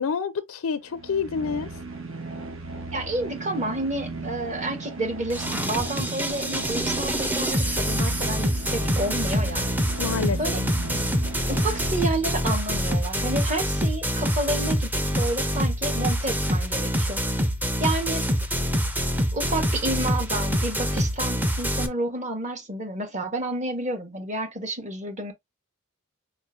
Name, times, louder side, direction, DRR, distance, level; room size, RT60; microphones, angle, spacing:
voice 1, 0.0-1.7 10.0-10.7, left 5 dB, 85° left, 0.5 m, -28 dB
sound 1, 0.8-12.5, right 3 dB, 65° right, 1.1 m, -37 dB
voice 2, 2.9-9.7 10.4-10.6 11.5-17.2 17.8-18.2 19.3-25.3, right 2 dB, 35° right, 1.2 m, -30 dB
sound 2, 5.3-21.9, equal, 10° right, 0.6 m, -25 dB
4.8 x 4.3 x 2.5 m
head